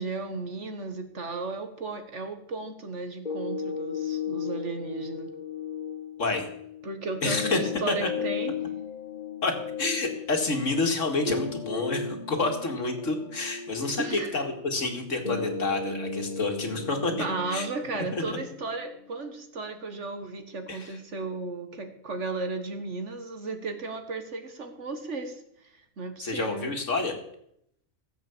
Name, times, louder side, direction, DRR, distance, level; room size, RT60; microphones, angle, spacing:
voice 1, 0.0-5.3 6.8-8.5 14.0-14.4 17.2-26.7, right 3 dB, 60° right, 7 dB, 1.8 m, -35 dB
sound 1, 3.3-19.3, left 5 dB, 30° left, 2.0 m, -36 dB
voice 2, 7.2-7.6 7.9-8.1 9.4-17.1 17.5-17.7 17.9-18.4 20.7-21.0 26.2-27.1, left 3 dB, 65° left, 4 dB, 2.4 m, -29 dB
16.5 x 8.0 x 7.2 m, 0.73 s
omnidirectional pair, 1.4 m